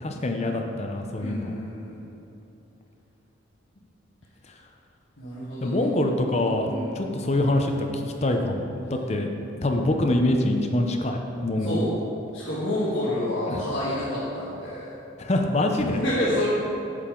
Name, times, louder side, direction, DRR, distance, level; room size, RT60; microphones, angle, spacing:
voice 1, 0.0-1.5 4.5-4.6 5.6-9.3 9.5-11.8 13.5-13.7 15.2-16.0, left 1 dB, 30° left, 3 dB, 0.6 m, -25 dB
voice 2, 1.2-2.0 5.2-5.8 6.7-6.9 11.6-11.9 12.3-14.9 15.9-16.5, left 1 dB, 70° left, -9 dB, 1.5 m, -28 dB
8.3 x 7.5 x 3.8 m, 2.9 s
head